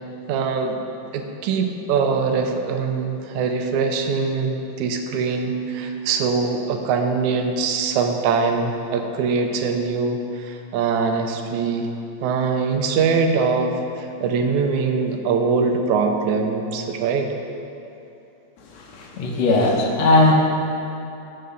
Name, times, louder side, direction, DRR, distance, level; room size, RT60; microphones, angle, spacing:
voice 1, 0.3-0.8 1.1-11.9 12.2-17.3, right 5 dB, 80° right, 4 dB, 2.1 m, -22 dB
voice 2, 18.7-20.3, left 2 dB, 70° left, 0 dB, 2.1 m, -18 dB
13.0 x 5.8 x 5.2 m, 2.8 s
omnidirectional pair, 3.3 m